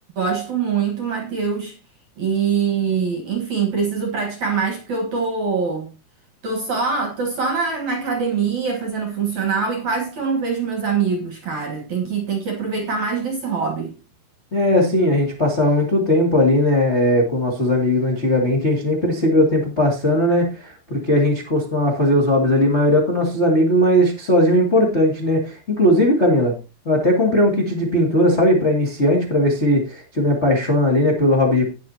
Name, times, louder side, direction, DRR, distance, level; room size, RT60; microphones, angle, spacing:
voice 1, 0.2-1.8 2.2-5.9 6.4-13.9, right 5 dB, 60° right, 2.0 m, -23 dB
voice 2, 14.5-26.5 26.8-31.7, left 1 dB, 65° left, 0.6 m, -18 dB
18.5 x 6.5 x 2.8 m
omnidirectional pair, 5.4 m